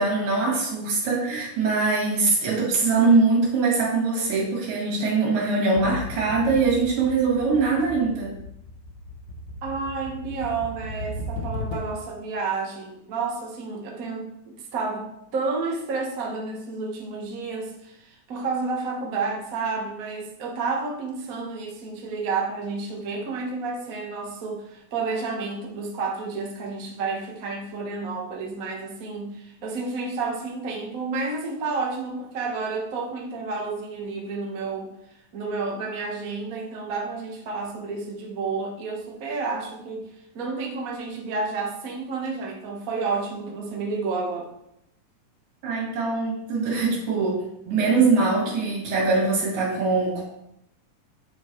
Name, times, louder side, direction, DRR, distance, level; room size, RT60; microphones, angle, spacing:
voice 1, 0.0-8.3 45.6-50.2, right 4 dB, 90° right, -4 dB, 4.4 m, -22 dB
sound 1, 5.8-12.1, left 2 dB, 80° left, 2.8 m, -36 dB
voice 2, 9.6-34.9 35.3-40.1 40.3-44.4, right 4 dB, 45° right, -1 dB, 1.0 m, -30 dB
9.0 x 7.4 x 3.3 m, 0.79 s
omnidirectional pair, 3.8 m